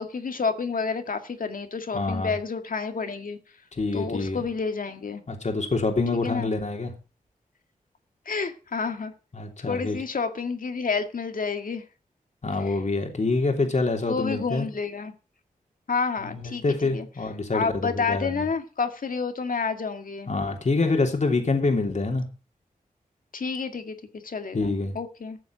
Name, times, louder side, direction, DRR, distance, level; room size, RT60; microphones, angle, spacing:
voice 1, 0.0-3.4 3.9-5.2 6.2-6.5 8.3-9.1 9.7-11.8 12.7-12.8 14.1-15.1 15.9-16.6 16.9-17.1 17.5-20.3 23.3-25.4, left 5 dB, 70° left, 7 dB, 2.0 m, -29 dB
voice 2, 1.9-2.4 3.7-4.4 5.3-6.9 9.3-10.0 12.4-14.7 16.3-18.4 20.3-22.3 24.5-25.0, left 3 dB, 55° left, 4 dB, 3.1 m, -26 dB
14.0 x 7.1 x 6.0 m, 0.34 s
cardioid pair, 60°, 15 cm